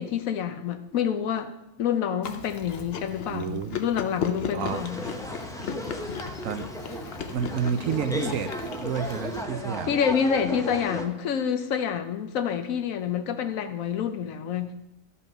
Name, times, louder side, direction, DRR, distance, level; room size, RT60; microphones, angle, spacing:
voice 1, 0.0-1.5 1.8-5.0 9.8-14.7, left 8 dB, 80° left, 8 dB, 1.2 m, -27 dB
Chewing mastication, 2.2-9.4, left 6 dB, 55° left, 0.9 m, -36 dB
voice 2, 3.3-3.8 4.5-4.8 6.4-6.7 7.3-8.5 8.8-10.0, right 7 dB, 75° right, 9 dB, 1.1 m, -29 dB
sound 1, 4.7-11.1, equal, 5° left, 0.5 m, -35 dB
12.5 x 5.7 x 5.3 m, 0.88 s
omnidirectional pair, 1.4 m